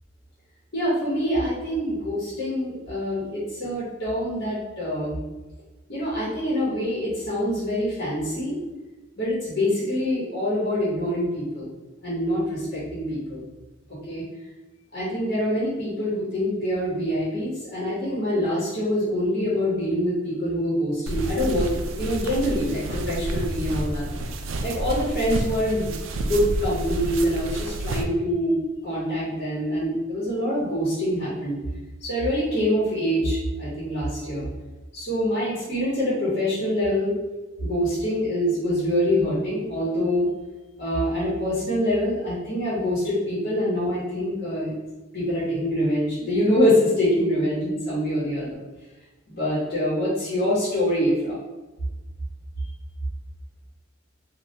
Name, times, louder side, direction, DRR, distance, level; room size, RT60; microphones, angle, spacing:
voice 1, 0.7-5.2 5.9-8.5 9.2-11.7 12.0-13.4 14.1-14.2 14.9-21.7 21.9-24.0 24.6-28.6 28.8-31.6 32.0-34.4 34.9-37.1 37.6-40.3 40.8-44.7 45.1-48.6 49.3-51.4 52.6-52.7, equal, 50° left, -8 dB, 1.0 m, -25 dB
sound 1, 21.1-28.0, right 1 dB, 80° right, 0.3 m, -29 dB
3.1 x 2.3 x 2.8 m, 1.1 s
head